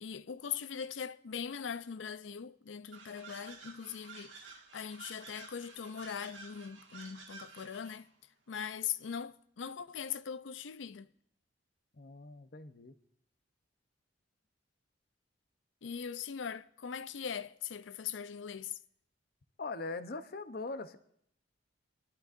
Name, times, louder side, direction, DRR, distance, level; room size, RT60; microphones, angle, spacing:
voice 1, 0.0-4.3 4.7-8.1 8.5-11.1 15.8-18.7, left 7 dB, 90° left, 0.5 m, -40 dB
sound 1, 2.9-8.1, right 4 dB, 90° right, 1.9 m, -52 dB
voice 2, 12.0-12.9 19.6-21.0, left 3 dB, 55° left, 0.8 m, -41 dB
27.5 x 12.0 x 2.6 m
head